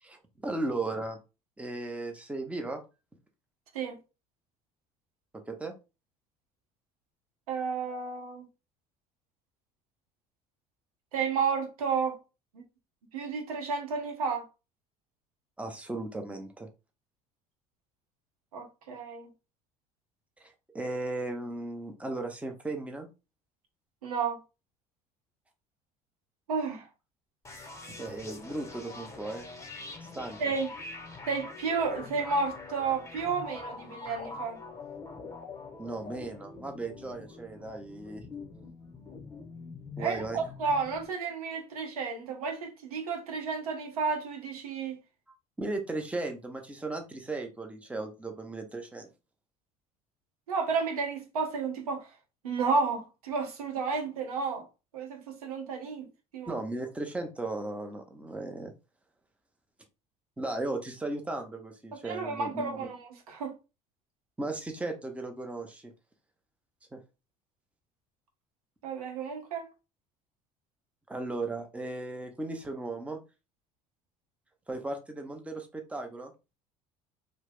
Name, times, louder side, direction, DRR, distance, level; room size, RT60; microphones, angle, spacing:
voice 1, 0.0-1.2 1.6-2.8 5.3-5.7 15.6-16.7 20.4-23.1 27.9-29.5 30.0-30.4 35.8-38.2 40.0-40.4 45.6-49.1 56.5-58.7 60.4-62.9 64.4-65.9 66.9-67.0 71.1-73.2 74.7-76.3, right 2 dB, 5° right, 0.6 m, -36 dB
voice 2, 7.5-8.5 11.1-12.2 12.5-12.6 13.1-14.4 18.5-19.3 24.0-24.4 26.5-26.9 30.4-30.7 31.3-34.6 40.0-45.0 50.5-52.1 52.4-54.6 54.9-56.1 56.3-56.5 62.0-63.5 68.8-69.7, right 5 dB, 85° right, 0.7 m, -32 dB
sound 1, 27.4-41.1, left 3 dB, 15° left, 0.9 m, -44 dB
2.2 x 2.0 x 3.4 m
hypercardioid pair, 65°, 19 cm